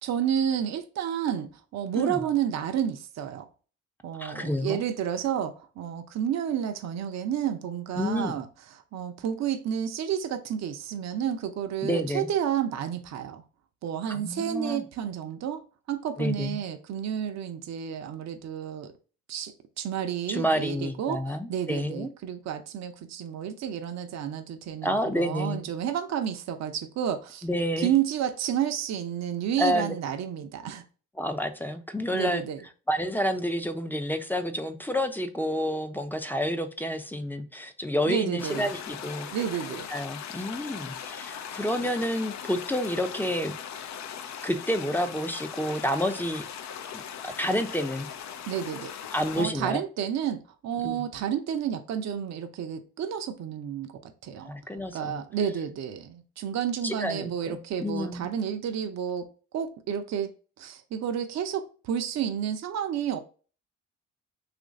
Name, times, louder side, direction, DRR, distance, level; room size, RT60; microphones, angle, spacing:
voice 1, 0.0-3.5 4.0-8.5 8.9-13.4 13.8-18.9 19.3-21.2 21.5-27.5 27.8-30.8 32.1-32.6 38.1-38.7 39.3-39.9 48.5-48.9 49.4-54.5 54.9-59.3 59.5-60.3 60.6-63.2, right 9 dB, 55° right, 0.6 m, -30 dB
voice 2, 4.2-4.8 8.0-8.4 11.8-12.3 14.1-14.8 16.2-16.6 20.3-22.1 24.8-25.7 27.4-27.9 29.6-29.9 31.2-32.4 32.9-39.3 39.9-43.8 44.4-46.4 46.9-48.1 49.1-49.8 50.8-51.0 54.4-55.2 56.8-58.3, equal, 5° left, 0.5 m, -29 dB
sound 1, 38.4-49.5, left 8 dB, 55° left, 0.5 m, -39 dB
3.0 x 2.5 x 3.9 m
supercardioid pair, 55°, 34 cm